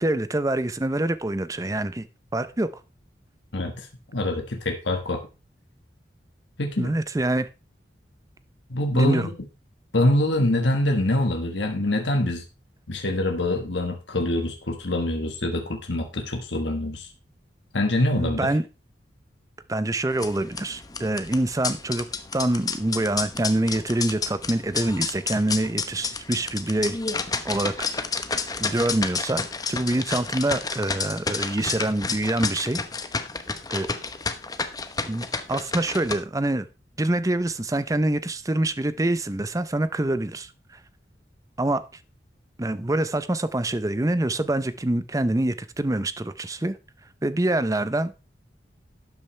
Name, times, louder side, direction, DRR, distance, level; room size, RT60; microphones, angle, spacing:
voice 1, 0.0-2.1 2.3-2.7 6.8-7.5 8.9-9.3 18.1-18.6 19.7-22.1 22.3-27.0 27.4-28.1 28.6-32.8 33.7-33.9 35.1-36.7 37.0-40.5 41.6-41.8 42.6-46.8 47.2-48.2, right 1 dB, 20° right, 0.6 m, -25 dB
voice 2, 3.5-3.9 4.1-5.2 6.6-6.9 8.7-9.3 9.9-12.4 12.9-17.1 17.7-18.5, left 1 dB, 80° left, 1.5 m, -24 dB
sound 1, 20.1-36.1, left 4 dB, 20° left, 0.9 m, -30 dB
12.0 x 9.0 x 3.3 m
head